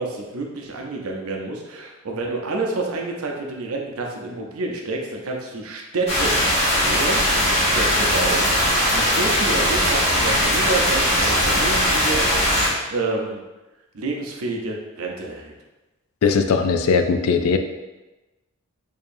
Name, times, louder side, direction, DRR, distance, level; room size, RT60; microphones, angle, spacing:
voice 1, 0.0-12.3 12.9-13.4 13.9-15.5, right 2 dB, 80° right, 1 dB, 0.6 m, -29 dB
sound 1, 6.1-12.7, equal, 30° left, 0.9 m, -19 dB
voice 2, 16.2-17.6, left 5 dB, 80° left, 7 dB, 0.3 m, -19 dB
4.5 x 2.8 x 2.6 m, 1.1 s
head